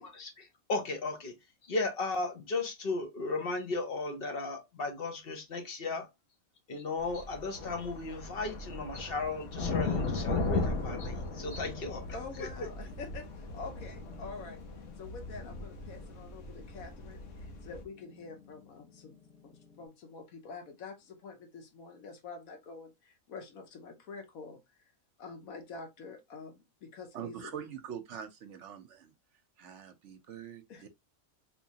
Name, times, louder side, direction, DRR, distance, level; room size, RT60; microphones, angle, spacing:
voice 1, 0.0-1.3 1.6-6.1 6.7-12.0 12.4-12.5, left 3 dB, 50° left, 0.9 m, -35 dB
sound 1, 7.0-17.8, left 3 dB, 65° left, 1.2 m, -37 dB
sound 2, 8.2-19.9, left 7 dB, 5° left, 1.3 m, -57 dB
voice 2, 12.1-14.6 15.0-24.6 25.2-27.5 30.7-30.9, left 4 dB, 85° left, 1.3 m, -47 dB
voice 3, 27.1-29.1 29.6-30.9, right 8 dB, 65° right, 0.9 m, -44 dB
3.7 x 3.0 x 2.7 m
omnidirectional pair, 1.5 m